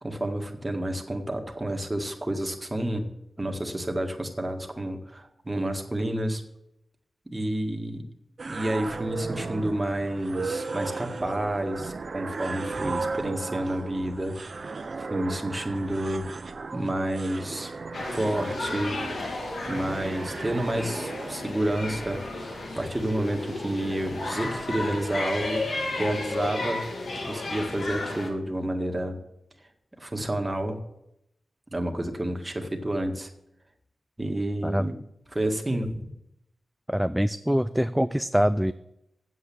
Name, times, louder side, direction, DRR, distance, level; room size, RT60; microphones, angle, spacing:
voice 1, 0.0-3.1 3.4-6.4 7.3-8.0 8.5-16.3 16.7-17.7 18.1-19.0 19.7-22.2 22.8-25.6 25.9-26.9 27.3-29.2 30.0-30.8 31.7-33.3 34.2-34.9 35.3-36.1, right 1 dB, 20° right, 3 dB, 1.8 m, -29 dB
sound 1, 8.4-25.3, right 4 dB, 55° right, 0.7 m, -36 dB
sound 2, 17.9-28.3, left 2 dB, 75° left, 2.1 m, -33 dB
voice 2, 36.9-38.7, equal, 5° right, 12 dB, 0.4 m, -24 dB
8.1 x 7.8 x 7.2 m, 0.82 s
cardioid pair, 55°, 0 cm